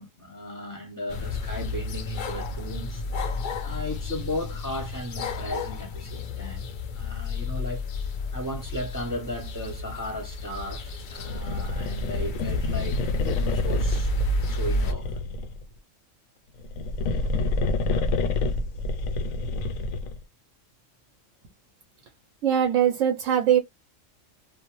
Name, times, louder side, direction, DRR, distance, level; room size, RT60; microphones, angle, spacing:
voice 1, 0.0-3.0 3.6-7.8 8.3-14.1 14.5-15.2, left 1 dB, 20° left, 0.7 m, -36 dB
sound 1, 1.1-14.9, left 2 dB, 65° left, 0.4 m, -32 dB
sound 2, 11.2-15.6 16.6-20.2, left 3 dB, 80° left, 1.0 m, -28 dB
voice 2, 22.4-23.6, right 9 dB, 80° right, 1.0 m, -21 dB
2.4 x 2.0 x 2.9 m
omnidirectional pair, 1.4 m